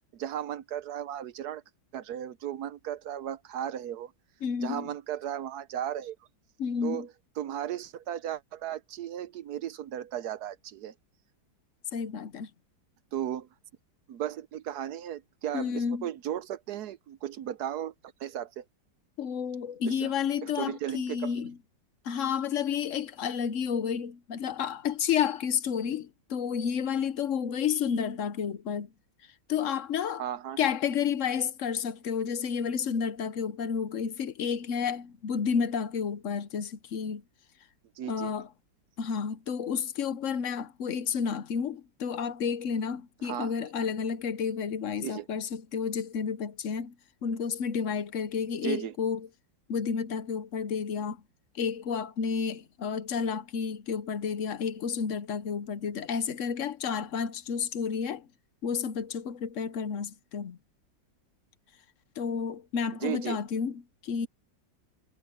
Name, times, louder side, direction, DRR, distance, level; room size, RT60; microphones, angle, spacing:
voice 1, 0.1-1.6 1.9-4.1 4.6-6.2 6.8-7.1 7.4-10.9 13.1-13.5 14.1-17.9 18.2-18.6 19.9-20.1 20.4-21.3 30.2-30.6 38.0-38.3 43.2-43.5 45.0-45.3 48.6-48.9 63.0-63.4, right 10 dB, 65° right, 1.1 m, -35 dB
voice 2, 4.4-4.9 6.6-7.1 11.9-12.5 15.5-16.1 19.2-21.6 22.0-28.9 29.5-30.2 30.6-37.2 38.1-38.5 39.0-46.9 47.2-49.3 49.7-51.2 51.5-58.3 58.6-60.6 62.2-64.3, left 7 dB, 55° left, 0.9 m, -31 dB
omnidirectional pair, 2.0 m